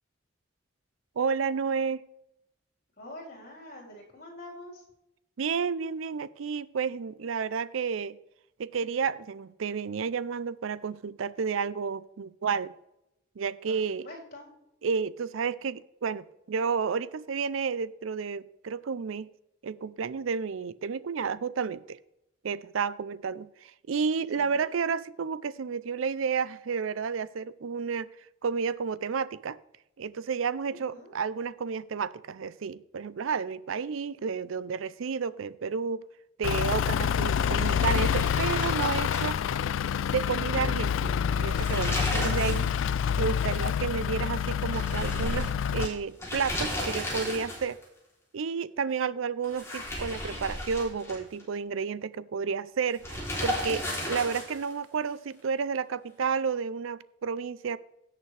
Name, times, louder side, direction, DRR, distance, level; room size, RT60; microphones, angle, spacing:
voice 1, 1.2-2.0 5.4-8.2 8.6-12.7 13.4-14.1 14.8-19.3 19.6-22.0 22.4-28.1 28.4-29.6 30.0-36.0 36.4-39.4 40.1-42.7 43.2-47.8 48.3-57.8, right 6 dB, 90° right, 18 dB, 0.5 m, -31 dB
voice 2, 3.0-4.9 13.7-14.5 24.3-24.6 30.7-31.1, left 1 dB, 50° left, -3 dB, 4.1 m, -46 dB
Truck / Idling, 36.4-45.9, left 8 dB, 80° left, 0.3 m, -27 dB
sound 1, 37.5-39.9 40.2-40.3 41.3-42.7 43.0-43.1 44.7-47.8 49.4-51.4 53.0-54.7, left 1 dB, 15° left, 3.2 m, -34 dB
17.0 x 6.8 x 3.3 m, 0.84 s
head